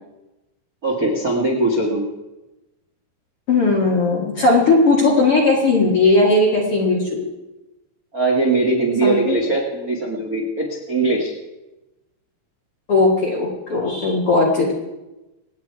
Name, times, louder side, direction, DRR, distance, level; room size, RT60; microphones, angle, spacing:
voice 1, 0.8-2.1 8.1-11.3, right 2 dB, 40° right, -2 dB, 1.2 m, -20 dB
voice 2, 3.5-7.2 9.0-9.4 12.9-14.7, left 3 dB, 45° left, -2 dB, 2.2 m, -17 dB
27.0 x 9.2 x 4.8 m, 1.0 s
omnidirectional pair, 5.2 m